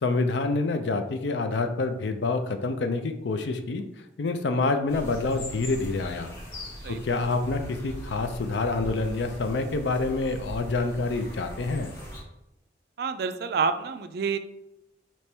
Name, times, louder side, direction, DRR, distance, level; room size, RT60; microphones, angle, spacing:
voice 1, 0.0-3.8 4.2-6.3 6.9-11.9, left 3 dB, 75° left, 8 dB, 0.4 m, -27 dB
sound 1, 4.9-12.2, equal, 60° left, 1.6 m, -40 dB
voice 2, 6.8-7.2 13.0-14.4, right 5 dB, 55° right, 10 dB, 0.3 m, -28 dB
3.3 x 2.9 x 4.4 m, 0.88 s
head